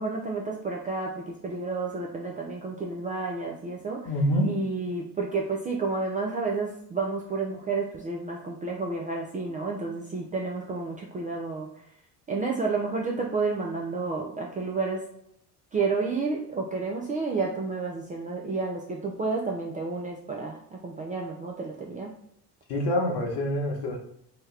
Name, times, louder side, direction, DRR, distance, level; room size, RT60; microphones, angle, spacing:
voice 1, 0.0-4.1 4.4-11.7 12.3-15.0 15.7-22.1, right 4 dB, 20° right, -1 dB, 0.3 m, -30 dB
voice 2, 4.0-4.5 22.7-24.0, equal, 55° left, 0 dB, 1.0 m, -26 dB
2.9 x 2.2 x 3.2 m, 0.72 s
hypercardioid pair, 60°, 48 cm